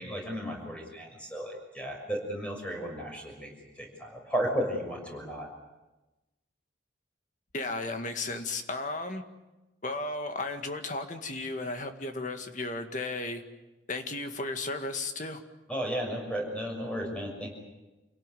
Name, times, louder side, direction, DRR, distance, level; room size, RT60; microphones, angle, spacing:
voice 1, 0.0-3.5 3.7-5.5 15.7-17.5, equal, 5° left, 0 dB, 6.3 m, -34 dB
voice 2, 7.5-9.2 9.8-13.4 13.9-15.4, left 2 dB, 40° left, 6 dB, 2.0 m, -34 dB
28.0 x 18.0 x 9.3 m, 1.1 s
head